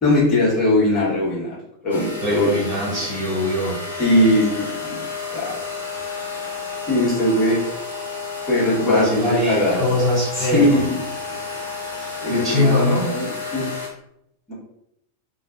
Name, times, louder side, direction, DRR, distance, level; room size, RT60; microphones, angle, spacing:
voice 1, 0.0-1.6 1.8-2.5 2.9-3.0 4.0-5.0 5.3-5.6 6.9-7.6 8.5-9.9 10.3-11.0 11.3-11.4 12.2-13.7 14.5-14.6, left 1 dB, 30° left, -6 dB, 1.2 m, -20 dB
sound 1, 1.9-13.9, left 4 dB, 75° left, 0.6 m, -31 dB
voice 2, 2.2-3.8 8.9-10.8 12.0-13.1, left 1 dB, 15° right, -7 dB, 1.1 m, -22 dB
2.5 x 2.1 x 2.4 m, 0.77 s
figure-of-eight pair, 90°, 0 cm